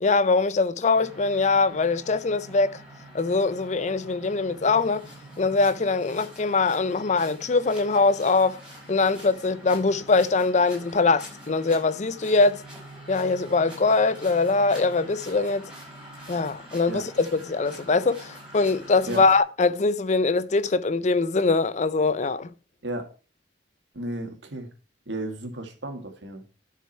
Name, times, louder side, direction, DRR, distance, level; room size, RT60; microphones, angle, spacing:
voice 1, 0.0-2.8 3.1-5.1 5.4-8.6 8.9-12.6 13.1-15.7 16.3-22.5, left 3 dB, 40° left, 0.5 m, -22 dB
sound 1, 0.9-19.4, right 1 dB, 5° right, 5.4 m, -45 dB
voice 2, 23.9-24.7 25.1-26.4, right 1 dB, 80° right, 2.1 m, -33 dB
11.0 x 6.6 x 4.4 m
head